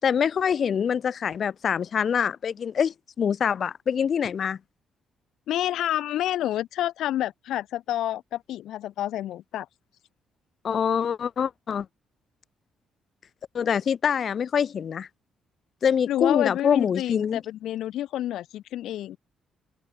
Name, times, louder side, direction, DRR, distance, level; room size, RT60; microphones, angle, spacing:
voice 1, 0.0-4.6 10.6-11.9 13.5-15.1 15.8-17.4, left 7 dB, 55° left, 5.7 m, -25 dB
voice 2, 5.5-9.7 16.1-19.2, left 13 dB, 80° left, 4.7 m, -28 dB
cardioid pair, 90°, 0 cm